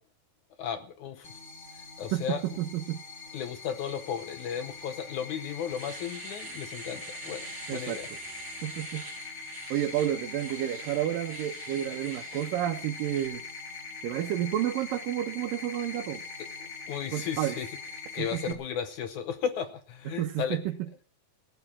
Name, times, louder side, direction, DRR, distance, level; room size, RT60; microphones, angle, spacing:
voice 1, 0.6-1.3 2.0-2.4 3.3-8.1 16.6-17.7 18.1-20.6, left 8 dB, 70° left, 10 dB, 2.0 m, -35 dB
sound 1, 1.2-18.5, left 4 dB, 30° left, 1.4 m, -42 dB
voice 2, 2.1-3.0 7.7-8.0 8.6-9.3 9.7-13.4 14.0-16.2 17.1-17.6 18.2-18.4 20.2-20.6, right 12 dB, 75° right, 4 dB, 2.6 m, -30 dB
Domestic sounds home sounds, 5.0-5.1 5.5-13.3, right 5 dB, 40° right, 2.0 m, -47 dB
16.0 x 8.8 x 7.3 m, 0.42 s
omnidirectional pair, 4.1 m